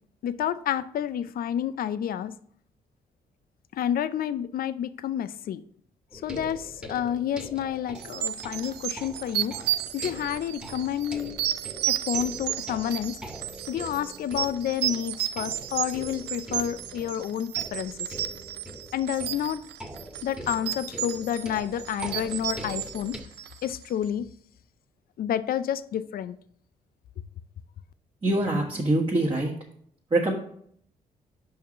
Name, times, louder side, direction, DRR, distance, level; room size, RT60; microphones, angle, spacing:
voice 1, 0.2-2.3 3.7-5.6 6.1-9.6 9.9-11.4 11.9-13.2 13.7-18.1 18.9-19.6 20.2-23.2 23.6-24.3 25.2-26.4, left 10 dB, 60° left, 14 dB, 0.5 m, -29 dB
sound 1, 6.1-23.2, right 1 dB, 5° right, 1.6 m, -43 dB
sound 2, 8.0-23.8, right 12 dB, 80° right, 0.5 m, -33 dB
voice 2, 28.2-29.5 30.1-30.3, right 2 dB, 30° right, -3 dB, 1.6 m, -24 dB
5.4 x 4.7 x 6.2 m, 0.64 s
supercardioid pair, 55°, 17 cm